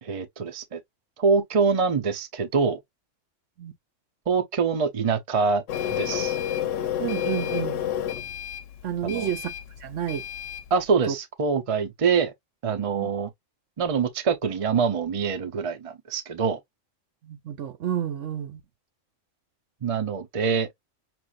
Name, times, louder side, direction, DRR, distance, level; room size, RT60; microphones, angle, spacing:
voice 1, 0.0-0.8 1.2-2.8 4.3-5.6 5.9-6.4 9.0-9.3 10.7-12.3 12.6-13.3 13.8-16.6 19.8-20.7, right 5 dB, 35° right, 0.7 m, -25 dB
Printer, 5.7-10.7, left 10 dB, 85° left, 1.0 m, -30 dB
voice 2, 7.0-7.8 8.8-9.5 9.8-10.2 11.1-11.2 12.9-13.1 17.2-18.6, right 10 dB, 80° right, 1.2 m, -30 dB
6.0 x 2.5 x 2.4 m
omnidirectional pair, 1.3 m